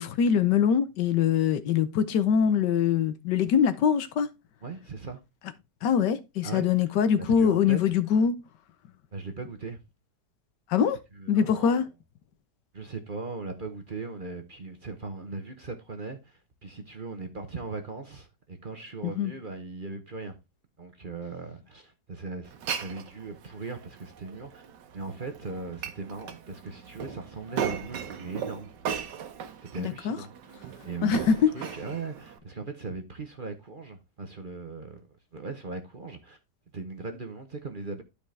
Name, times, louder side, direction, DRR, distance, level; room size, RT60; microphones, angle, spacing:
voice 1, 0.0-4.3 5.8-8.4 10.7-11.0 11.3-11.9 19.0-19.3 29.8-30.2 31.0-31.5, left 7 dB, 80° left, 1.5 m, -23 dB
voice 2, 4.6-5.2 6.4-6.7 7.2-7.9 9.1-9.8 11.2-11.8 12.7-20.3 20.8-24.6 24.9-28.7 29.6-30.3 30.8-36.4 36.7-38.0, right 3 dB, 35° right, 0.9 m, -39 dB
Glass, 22.5-32.4, right 7 dB, 80° right, 1.5 m, -38 dB
12.0 x 5.0 x 3.3 m
omnidirectional pair, 1.8 m